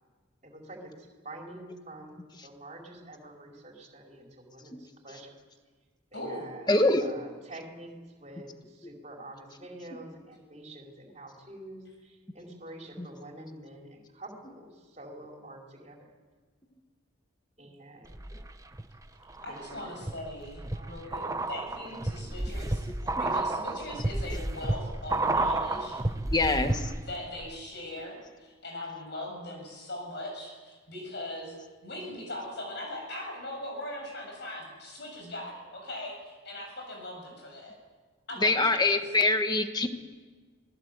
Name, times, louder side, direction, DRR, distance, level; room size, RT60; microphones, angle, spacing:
voice 1, 0.4-5.3 6.1-7.9 8.2-16.1 17.6-18.4 19.5-20.1 20.6-21.0 21.8-21.9, right 1 dB, 35° right, 0 dB, 4.9 m, -47 dB
voice 2, 6.1-6.5 19.4-22.9 23.2-26.0 26.9-31.5 31.8-37.8 38.3-39.0, left 1 dB, 55° left, 1 dB, 7.2 m, -40 dB
voice 3, 6.7-7.1 13.0-13.1 23.2-23.3 26.3-26.9 38.4-39.9, left 2 dB, 20° left, 7 dB, 1.5 m, -25 dB
sound 1, 18.1-18.8 19.3-27.2 27.4-27.5, right 2 dB, 15° right, 0.8 m, -31 dB
27.0 x 20.0 x 8.3 m, 1.4 s
head